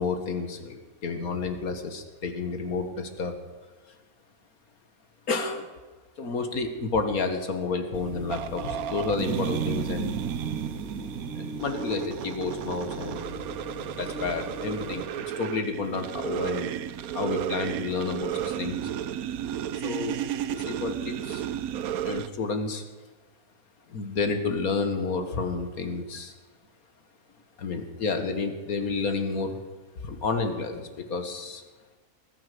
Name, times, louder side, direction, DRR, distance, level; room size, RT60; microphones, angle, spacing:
voice 1, 0.0-3.3 5.3-5.7 6.2-10.2 11.4-13.4 14.0-16.7 17.1-18.9 19.8-20.2 20.5-21.4 22.0-22.8 23.9-26.3 27.6-29.6 30.0-31.6, left 4 dB, 70° left, 7 dB, 2.0 m, -30 dB
sound 1, 7.9-15.0, left 1 dB, 45° left, 1.9 m, -40 dB
sound 2, 8.3-22.3, right 10 dB, 75° right, 1.1 m, -33 dB
19.5 x 9.9 x 6.8 m, 1.3 s
omnidirectional pair, 1.6 m